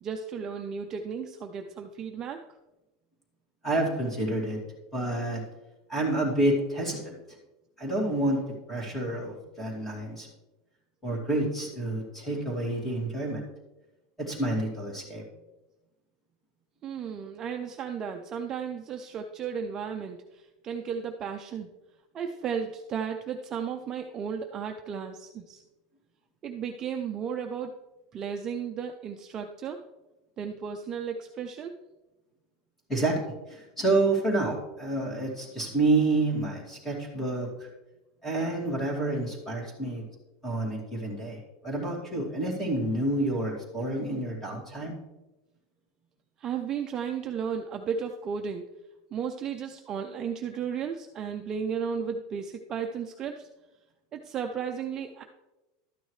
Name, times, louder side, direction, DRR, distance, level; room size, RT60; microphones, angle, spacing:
voice 1, 0.0-2.4 16.8-21.7 22.1-25.6 26.4-27.7 28.1-29.8 30.4-31.8 46.4-48.7 49.1-53.5 54.1-55.2, right 7 dB, 25° right, 4 dB, 0.5 m, -34 dB
voice 2, 3.6-4.6 4.9-5.4 5.9-7.2 7.8-8.4 8.7-10.3 11.0-13.4 14.2-15.2 32.9-37.7 38.2-40.1 40.4-45.0, right 2 dB, 10° left, -2 dB, 2.5 m, -29 dB
12.5 x 9.3 x 3.2 m, 1.0 s
supercardioid pair, 170°, 2 cm